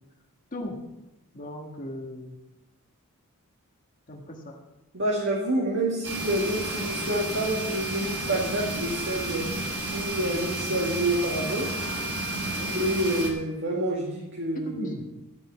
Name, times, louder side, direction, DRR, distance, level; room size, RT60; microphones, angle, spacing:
voice 1, 1.3-2.4 4.1-4.6 12.4-12.7 14.6-15.1, left 1 dB, 35° left, 0 dB, 1.5 m, -37 dB
voice 2, 4.9-9.5 9.9-11.7 12.6-15.0, right 1 dB, 55° right, -3 dB, 2.0 m, -28 dB
sound 1, 6.0-13.3, right 1 dB, 85° right, 2.8 m, -31 dB
13.0 x 5.5 x 8.1 m, 0.97 s
head